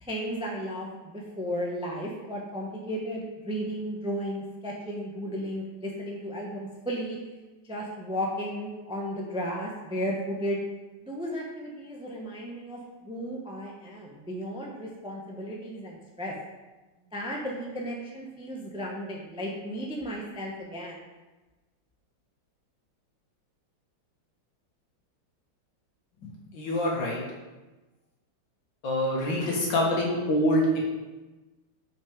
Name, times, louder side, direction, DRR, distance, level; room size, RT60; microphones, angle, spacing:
voice 1, 0.0-7.2 7.7-10.6 11.0-16.3 17.1-21.0, equal, 5° right, -1 dB, 0.5 m, -34 dB
voice 2, 26.2-27.2 28.8-30.8, left 1 dB, 70° left, -3 dB, 2.3 m, -26 dB
5.9 x 5.3 x 5.1 m, 1.2 s
omnidirectional pair, 2.1 m